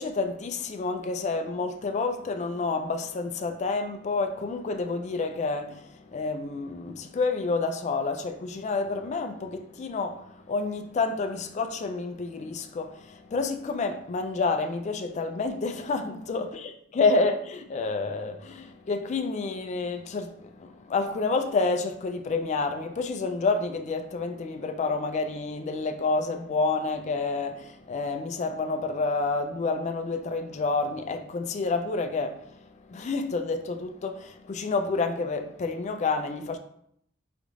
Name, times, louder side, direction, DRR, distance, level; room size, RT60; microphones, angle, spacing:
voice 1, 0.0-36.6, left 3 dB, 35° left, 0.3 m, -29 dB
5.0 x 2.5 x 3.0 m
head